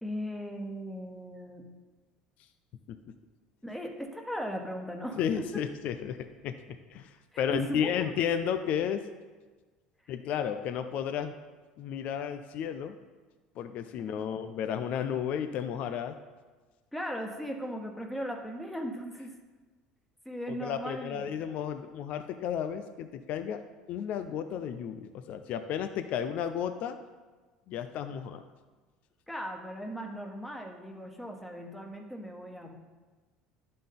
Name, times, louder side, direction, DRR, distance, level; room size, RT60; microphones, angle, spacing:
voice 1, 0.0-1.6 3.6-5.6 7.3-8.2 16.9-19.3 20.2-21.3 29.3-32.7, equal, 5° left, 2 dB, 1.2 m, -38 dB
voice 2, 5.2-9.0 10.1-11.3 11.8-12.9 13.6-16.2 20.6-23.6 23.9-27.0 27.7-28.4, left 8 dB, 60° left, 9 dB, 0.4 m, -33 dB
11.0 x 3.8 x 3.8 m, 1.3 s
hypercardioid pair, 80°, 3 cm